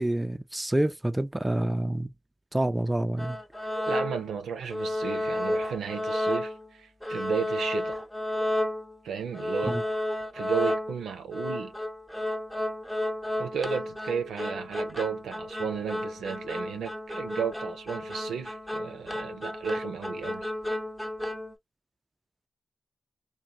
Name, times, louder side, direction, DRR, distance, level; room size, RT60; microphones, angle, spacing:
voice 1, 0.0-2.1 2.5-3.4 9.7-9.8, right 1 dB, 15° right, 0.4 m, -27 dB
sound 1, 3.2-4.4 4.7-6.7 7.0-9.0 9.3-21.5, left 1 dB, 10° left, 0.8 m, -32 dB
voice 2, 3.9-8.0 9.0-9.8 10.3-11.8 13.4-20.5, right 7 dB, 85° right, 0.5 m, -34 dB
2.6 x 2.2 x 2.8 m
supercardioid pair, 40°, 0 cm